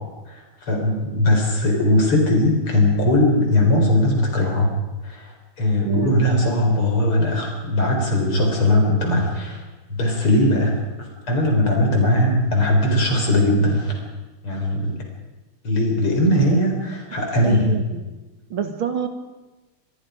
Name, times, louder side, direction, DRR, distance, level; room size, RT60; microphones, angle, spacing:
voice 1, 0.3-4.7 5.0-9.6 9.9-14.0 14.4-15.0 15.6-17.7, left 1 dB, 80° left, 2 dB, 5.3 m, -19 dB
voice 2, 17.4-18.0 18.5-19.1, right 8 dB, 70° right, 7 dB, 2.5 m, -26 dB
27.0 x 21.5 x 5.2 m, 1.1 s
omnidirectional pair, 2.4 m